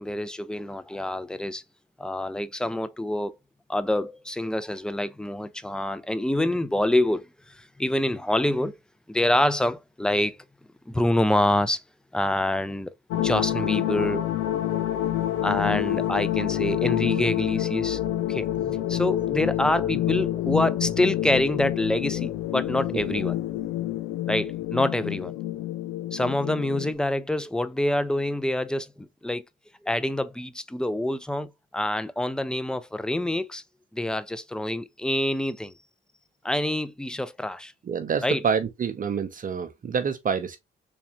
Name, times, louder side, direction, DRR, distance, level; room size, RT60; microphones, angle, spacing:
voice 1, 0.0-1.6 2.0-3.4 3.7-8.8 9.1-10.4 10.9-11.8 12.1-14.2 15.4-18.0 18.3-23.3 24.3-25.3 26.1-29.4 29.8-33.6 33.9-35.7 36.4-37.7 38.2-38.4, left 1 dB, 5° left, 0.5 m, -26 dB
sound 1, 13.1-26.9, left 13 dB, 85° left, 0.5 m, -27 dB
voice 2, 37.8-40.6, right 6 dB, 40° right, 0.6 m, -27 dB
3.5 x 3.2 x 2.9 m
supercardioid pair, 60°, 21 cm